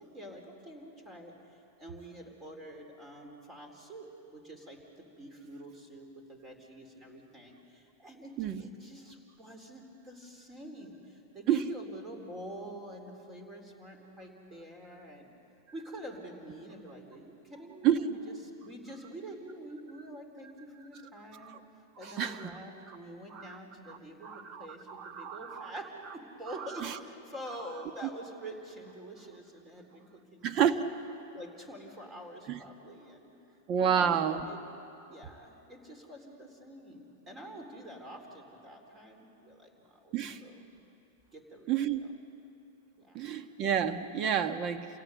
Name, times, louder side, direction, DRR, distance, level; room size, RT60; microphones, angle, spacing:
voice 1, 0.0-4.8 5.2-8.3 8.6-15.3 15.7-21.6 22.0-30.7 31.3-33.3 33.8-34.6 35.1-40.6 41.3-42.1 43.0-43.2 44.2-44.3, right 1 dB, 20° right, 3 dB, 4.1 m, -47 dB
voice 2, 22.0-22.5 23.3-23.5 24.2-25.7 26.8-26.9 30.4-30.8 32.5-32.6 33.7-34.4 40.1-40.4 41.7-42.0 43.1-44.9, right 9 dB, 40° right, 9 dB, 1.3 m, -29 dB
28.0 x 17.0 x 8.3 m, 2.9 s
hypercardioid pair, 115°, 0 cm